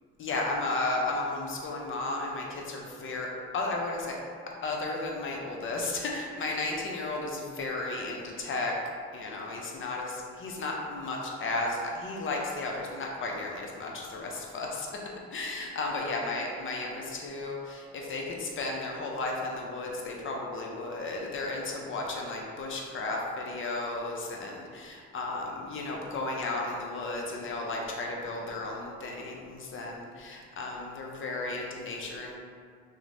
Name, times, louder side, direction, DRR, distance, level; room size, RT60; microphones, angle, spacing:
voice 1, 0.2-3.3 3.5-4.2 4.6-8.7 9.1-15.0 15.3-32.4, left 2 dB, 40° left, -1 dB, 0.5 m, -34 dB
2.9 x 2.1 x 2.5 m, 2.1 s
cardioid pair, 90°, 30 cm